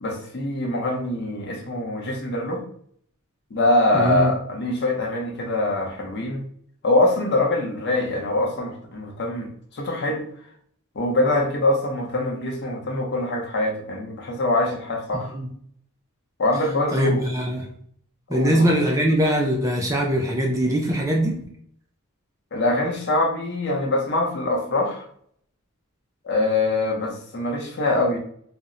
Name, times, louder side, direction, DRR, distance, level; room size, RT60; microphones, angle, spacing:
voice 1, 0.0-2.6 3.5-6.4 6.8-10.3 11.0-15.4 16.4-17.3 18.3-18.7 22.5-25.0 26.2-28.2, left 2 dB, 50° left, 1 dB, 0.6 m, -24 dB
voice 2, 3.9-4.3 15.3-15.5 16.9-17.7 18.3-21.4, right 1 dB, 15° right, 0 dB, 0.3 m, -22 dB
2.1 x 2.0 x 3.6 m, 0.64 s
head